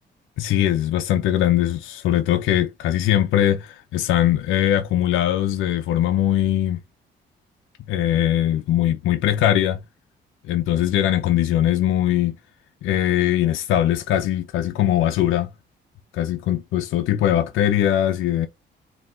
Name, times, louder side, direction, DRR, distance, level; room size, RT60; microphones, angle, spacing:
voice 1, 0.4-6.8 7.9-9.8 10.5-12.3 12.8-15.5 16.1-18.5, left 12 dB, 85° left, 0.6 m, -21 dB
3.9 x 2.9 x 3.5 m
cardioid pair, 90°, 20 cm